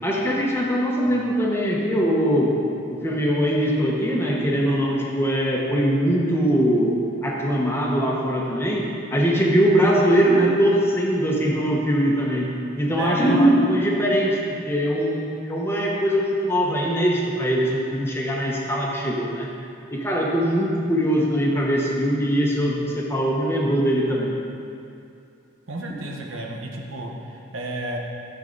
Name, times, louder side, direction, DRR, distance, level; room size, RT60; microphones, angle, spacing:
voice 1, 0.0-2.5 2.9-8.9 9.1-14.4 14.7-19.5 19.9-24.3, equal, 10° left, -3 dB, 1.1 m, -21 dB
voice 2, 13.0-13.4 25.7-28.0, right 2 dB, 80° right, 0 dB, 1.2 m, -32 dB
12.0 x 7.2 x 4.0 m, 2.5 s
head